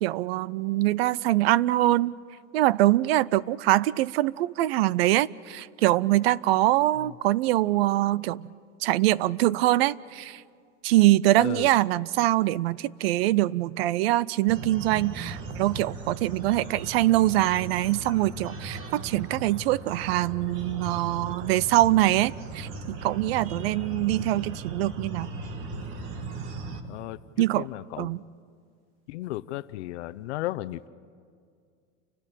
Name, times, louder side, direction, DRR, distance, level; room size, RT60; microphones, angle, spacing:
voice 1, 0.0-2.1 2.5-8.5 8.8-10.4 10.8-25.4 27.4-27.7 28.0-28.2, right 16 dB, 55° right, 22 dB, 0.5 m, -24 dB
voice 2, 11.4-11.7 26.9-27.2 27.5-28.3 29.1-30.9, left 16 dB, 65° left, 14 dB, 0.8 m, -35 dB
sound 1, 14.5-26.8, right 3 dB, 35° right, 1.8 m, -38 dB
29.5 x 12.5 x 8.9 m, 2.2 s
supercardioid pair, 165°, 36 cm